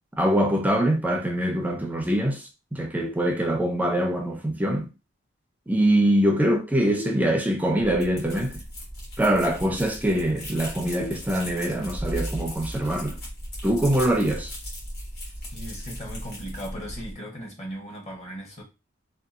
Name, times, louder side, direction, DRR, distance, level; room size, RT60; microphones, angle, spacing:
voice 1, 0.2-4.9 5.7-8.6 9.2-13.2 13.6-14.5, right 1 dB, 10° right, 0.4 m, -23 dB
sound 1, 3.0-3.9 7.0-8.0 11.0-12.0, left 1 dB, 80° left, 0.8 m, -42 dB
sound 2, 7.8-17.1, equal, 50° left, 1.2 m, -37 dB
voice 2, 15.5-18.6, equal, 35° left, 1.0 m, -37 dB
2.7 x 2.3 x 2.4 m
head